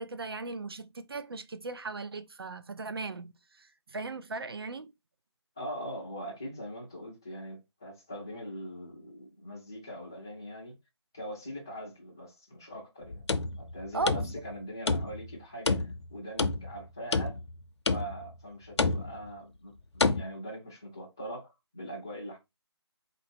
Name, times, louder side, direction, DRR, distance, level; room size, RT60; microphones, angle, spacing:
voice 1, 0.0-4.9 13.9-14.3, right 3 dB, 55° right, 0.6 m, -37 dB
voice 2, 5.6-10.7 11.1-13.2 13.6-17.4 17.9-22.4, equal, 10° left, 0.4 m, -42 dB
sound 1, 13.0-14.6 14.9-15.3 15.7-16.8 17.1-17.6 17.9-18.3 18.8-19.3 20.0-20.2, left 3 dB, 70° left, 0.6 m, -29 dB
4.2 x 2.7 x 4.3 m
hypercardioid pair, 175°, 15 cm